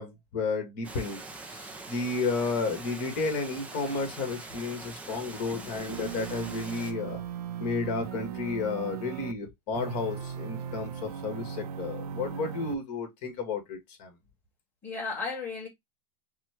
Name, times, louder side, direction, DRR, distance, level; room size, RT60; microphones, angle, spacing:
voice 1, 0.0-7.2 7.6-14.1, left 4 dB, 40° left, 1.9 m, -32 dB
Water, 0.8-6.9, right 3 dB, 5° right, 0.4 m, -43 dB
voice 2, 5.5-6.1 14.8-15.7, left 4 dB, 10° left, 1.9 m, -36 dB
sound 1, 5.9-9.4 9.7-12.7, right 8 dB, 75° right, 0.7 m, -38 dB
5.9 x 2.3 x 3.0 m
supercardioid pair, 170°, 20 cm